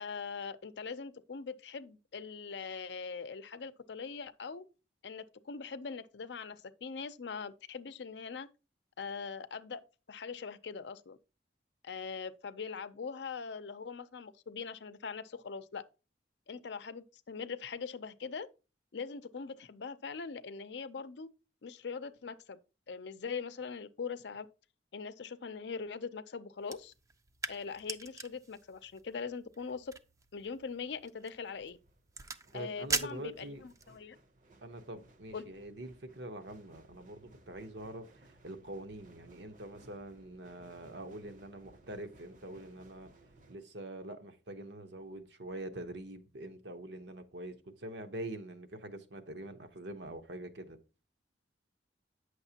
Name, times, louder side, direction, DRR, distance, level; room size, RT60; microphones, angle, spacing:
voice 1, 0.0-4.6 5.0-8.5 9.0-9.8 10.1-11.2 11.8-15.8 16.5-18.5 18.9-21.3 21.6-22.6 22.9-24.5 24.9-26.9 27.5-29.9 30.3-31.8 32.5-34.2 35.3-35.5, left 5 dB, 75° left, 0.5 m, -42 dB
sound 1, 26.6-34.0, right 4 dB, 20° right, 0.4 m, -42 dB
sound 2, 30.1-30.4 31.4-43.6, right 1 dB, 45° right, 0.7 m, -61 dB
voice 2, 32.5-33.6 34.6-43.1 43.5-50.8, right 1 dB, 80° right, 0.9 m, -45 dB
9.0 x 6.4 x 2.8 m
head